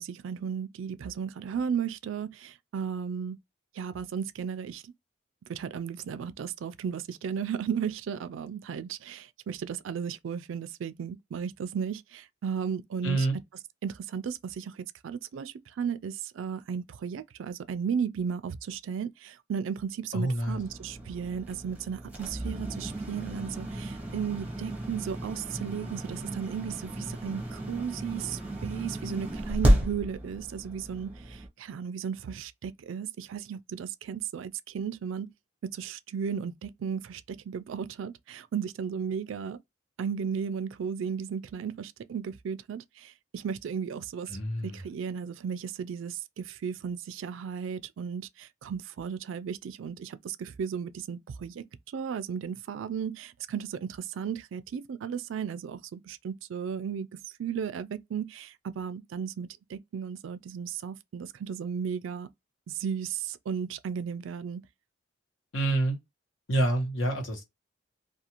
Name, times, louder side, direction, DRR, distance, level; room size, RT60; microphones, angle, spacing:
voice 1, 0.0-3.4 3.8-4.9 5.5-13.3 13.8-35.3 35.7-39.6 40.0-57.1 57.4-62.3 62.7-64.6, right 7 dB, 75° right, 0.3 m, -35 dB
voice 2, 13.0-13.4 20.1-20.6 44.3-44.8 65.5-66.0 66.5-67.4, right 2 dB, 80° left, 1.1 m, -27 dB
sound 1, 20.4-31.5, equal, 5° right, 0.6 m, -32 dB
2.5 x 2.3 x 2.8 m
head